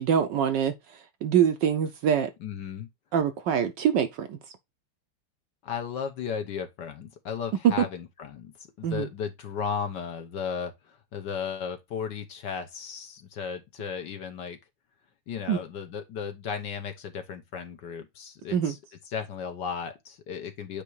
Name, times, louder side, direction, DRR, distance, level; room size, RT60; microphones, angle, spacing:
voice 1, 0.0-2.3 3.1-4.4 7.6-7.9 8.8-9.1 15.5-15.6 18.5-18.8, right 8 dB, 65° right, 1.2 m, -24 dB
voice 2, 2.4-2.9 5.6-8.5 8.8-14.6 15.3-18.8 19.1-20.8, left 6 dB, 60° left, 1.5 m, -35 dB
8.5 x 3.0 x 4.6 m
omnidirectional pair, 2.4 m